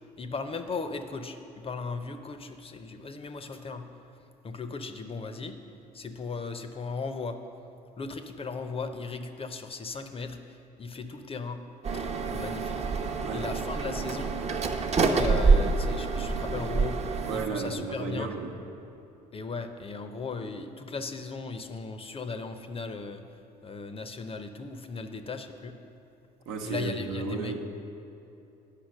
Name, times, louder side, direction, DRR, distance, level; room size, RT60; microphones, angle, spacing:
voice 1, 0.2-3.8 4.4-5.5 5.9-7.4 8.0-11.6 11.9-12.8 13.3-14.3 15.0-18.3 19.3-23.2 23.6-25.7 26.6-27.6, left 4 dB, 25° left, 8 dB, 0.6 m, -37 dB
sound 1, 11.8-17.5, right 4 dB, 30° right, 0.7 m, -26 dB
voice 2, 17.3-18.5 26.5-27.6, right 4 dB, 65° right, 3 dB, 0.9 m, -33 dB
8.3 x 5.6 x 6.5 m, 2.8 s
figure-of-eight pair, 55°, 21 cm